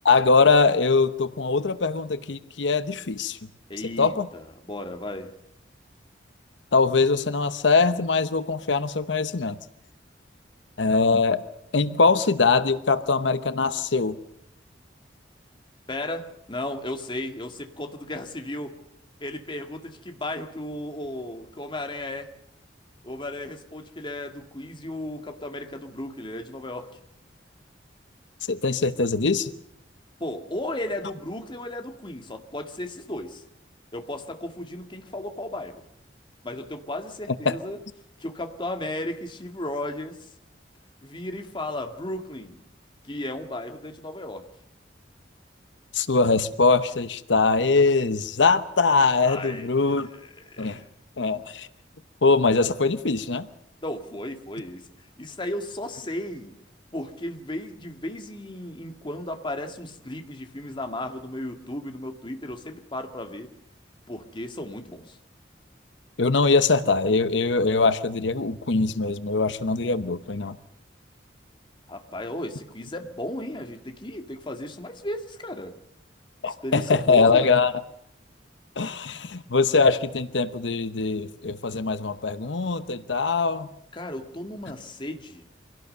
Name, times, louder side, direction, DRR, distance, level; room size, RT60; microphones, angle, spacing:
voice 1, 0.0-3.4 4.0-4.3 6.7-9.6 10.8-11.4 11.7-14.2 28.5-29.5 37.4-37.6 45.9-50.1 50.6-50.8 51.2-51.7 52.2-53.5 66.2-70.6 76.4-77.7 78.8-83.7, left 4 dB, 90° left, 12 dB, 0.9 m, -22 dB
voice 2, 3.7-5.3 15.9-18.7 19.2-22.3 23.0-26.9 30.2-33.4 33.9-35.8 36.4-37.8 38.2-40.3 41.0-42.6 43.0-44.5 49.3-50.9 53.8-56.5 56.9-63.5 64.1-65.2 71.9-75.8 76.6-77.5 83.9-85.4, left 1 dB, 25° left, 6 dB, 2.0 m, -35 dB
25.0 x 17.5 x 6.7 m, 0.77 s
head